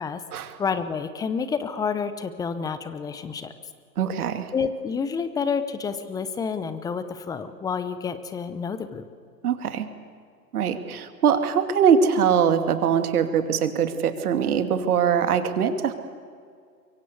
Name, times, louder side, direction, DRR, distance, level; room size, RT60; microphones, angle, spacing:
voice 1, 0.6-3.5 4.5-9.1, left 6 dB, 5° left, 12 dB, 0.7 m, -29 dB
voice 2, 4.0-4.5 9.4-9.9 10.5-15.9, right 7 dB, 60° right, 8 dB, 2.6 m, -22 dB
24.0 x 23.5 x 8.0 m, 2.2 s
hypercardioid pair, 130°, 50 cm